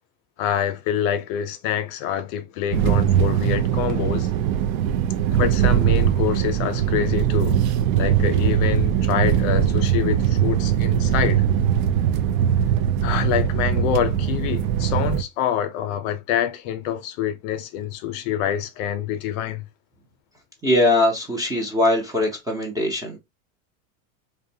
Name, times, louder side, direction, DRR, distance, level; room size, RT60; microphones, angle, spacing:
voice 1, 0.4-4.3 5.3-7.6 8.0-11.5 13.0-19.7, left 10 dB, 60° left, 0.6 m, -26 dB
sound 1, 2.7-15.2, right 9 dB, 75° right, 0.5 m, -21 dB
voice 2, 20.6-23.2, left 1 dB, 10° right, 0.4 m, -21 dB
2.5 x 2.1 x 2.6 m
supercardioid pair, 130°, 42 cm